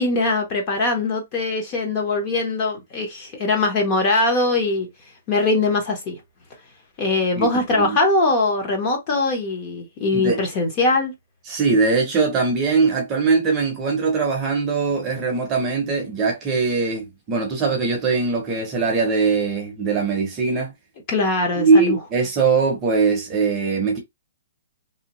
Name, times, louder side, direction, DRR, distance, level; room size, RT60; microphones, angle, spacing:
voice 1, 0.0-4.9 5.3-6.2 7.0-11.1 21.1-22.0, left 3 dB, 25° left, 0.7 m, -21 dB
voice 2, 7.4-8.0 10.1-10.4 11.5-20.7 21.6-24.0, right 4 dB, 15° right, 0.7 m, -21 dB
2.7 x 2.1 x 2.8 m
hypercardioid pair, 175°, 0 cm